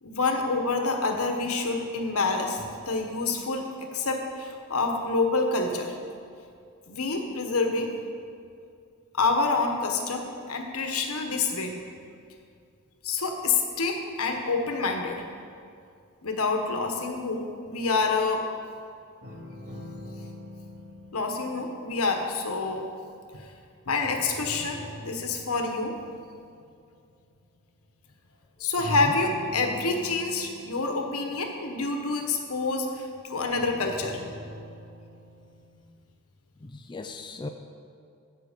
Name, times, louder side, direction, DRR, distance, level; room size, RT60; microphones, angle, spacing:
voice 1, 0.0-6.0 6.9-7.9 9.2-11.7 13.0-15.2 16.2-18.4 21.1-22.9 23.3-23.5 23.9-25.9 28.6-34.2, left 3 dB, 75° left, 4 dB, 1.2 m, -27 dB
sound 1, 19.2-23.6 24.0-27.3 28.8-32.8 33.5-35.7, left 1 dB, 70° right, 2.5 m, -45 dB
voice 2, 36.6-37.5, left 2 dB, 20° left, 5 dB, 0.4 m, -36 dB
15.5 x 6.1 x 5.2 m, 2.4 s
head